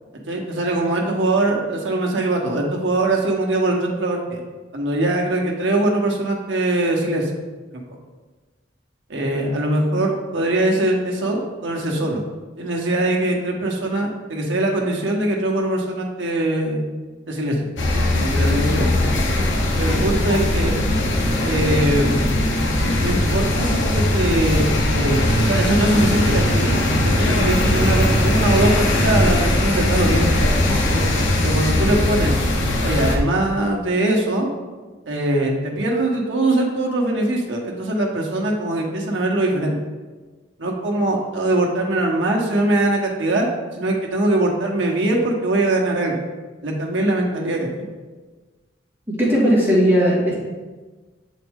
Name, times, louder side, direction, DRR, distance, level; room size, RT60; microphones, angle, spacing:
voice 1, 0.3-4.4 4.7-7.3 9.1-12.2 12.6-16.9 17.3-17.7 17.9-19.0 19.8-20.7 21.4-22.4 23.0-24.7 24.9-26.7 27.0-30.4 30.9-31.0 31.4-32.4 32.8-34.5 35.1-39.8 40.6-46.1 46.6-47.9, right 1 dB, 75° right, -1 dB, 1.1 m, -22 dB
sound 1, 17.8-33.2, left 1 dB, 75° left, 0.9 m, -19 dB
voice 2, 49.2-50.5, equal, 10° right, -7 dB, 1.9 m, -17 dB
7.2 x 4.2 x 3.6 m, 1.3 s
head